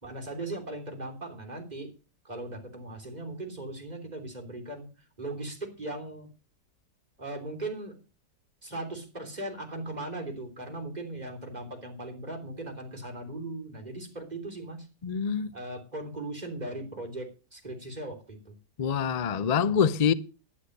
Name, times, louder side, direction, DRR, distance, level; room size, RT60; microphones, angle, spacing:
voice 1, 0.0-1.9 2.3-4.9 5.2-6.3 7.2-8.0 8.6-14.9 15.5-18.5, right 2 dB, 25° right, 3.4 m, -38 dB
voice 2, 15.0-15.5 18.8-20.1, left 7 dB, 65° left, 0.3 m, -25 dB
11.5 x 10.0 x 6.6 m
omnidirectional pair, 1.8 m